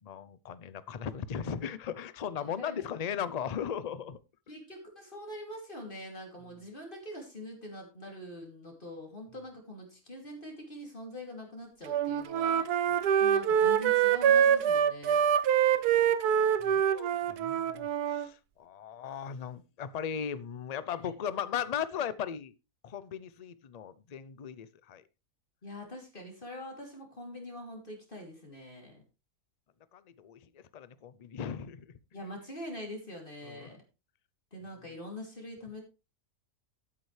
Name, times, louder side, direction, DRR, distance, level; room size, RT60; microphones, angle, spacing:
voice 1, 0.0-4.2 16.6-22.5 22.8-25.0 29.9-31.9 33.4-33.7, left 8 dB, 50° left, 0.4 m, -37 dB
voice 2, 2.4-2.8 4.5-15.2 25.6-29.0 32.1-33.8 34.5-35.8, left 1 dB, 35° left, 3.0 m, -44 dB
Wind instrument woodwind instrument, 11.9-18.3, right 9 dB, 90° right, 1.3 m, -25 dB
12.5 x 9.0 x 3.3 m
omnidirectional pair, 1.6 m